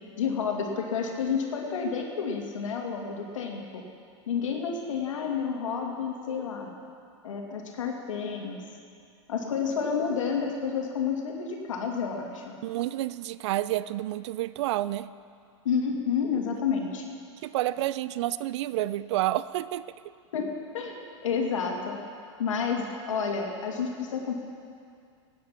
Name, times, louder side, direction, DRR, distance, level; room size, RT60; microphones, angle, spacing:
voice 1, 0.2-3.8 4.3-6.7 7.2-8.6 9.3-12.5 15.6-17.0 20.3-20.5 20.7-22.0 22.4-24.3, left 6 dB, 85° left, 1 dB, 2.5 m, -30 dB
voice 2, 12.6-15.1 17.4-19.9, right 15 dB, 65° right, 17 dB, 0.5 m, -29 dB
17.5 x 9.5 x 5.8 m, 2.3 s
hypercardioid pair, 125°, 16 cm